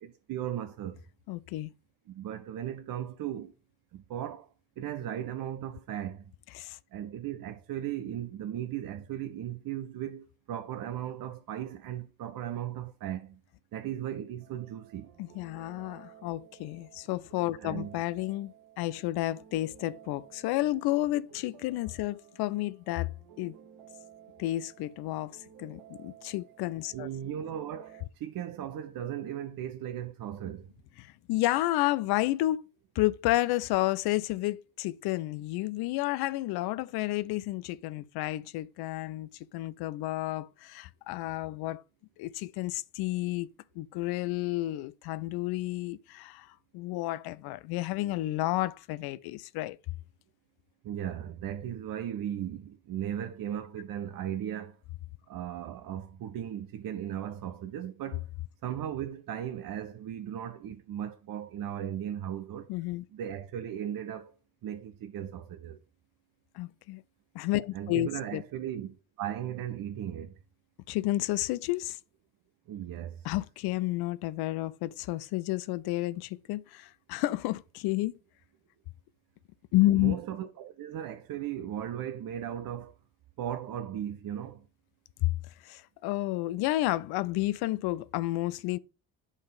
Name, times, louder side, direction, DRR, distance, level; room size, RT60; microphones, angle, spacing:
voice 1, 0.0-1.0 2.1-3.5 3.9-4.5 4.8-6.2 6.9-13.4 13.7-15.1 17.6-17.9 26.9-30.7 50.8-54.8 55.3-58.3 58.6-62.7 63.1-64.4 64.6-65.8 67.7-70.4 72.7-73.3 79.9-83.0 83.4-84.7, right 10 dB, 50° right, 0.8 m, -37 dB
voice 2, 1.3-1.7 6.5-6.8 15.2-23.6 24.4-25.3 25.6-27.1 31.0-32.6 33.0-41.8 42.2-43.5 43.8-49.8 62.7-63.0 66.5-67.0 67.3-68.4 70.9-72.0 73.2-78.1 79.7-80.2 85.2-85.3 85.6-88.8, left 17 dB, 60° left, 0.5 m, -31 dB
sound 1, 14.4-28.1, right 9 dB, 70° right, 1.2 m, -55 dB
8.1 x 3.7 x 5.3 m
hypercardioid pair, 50°, 45 cm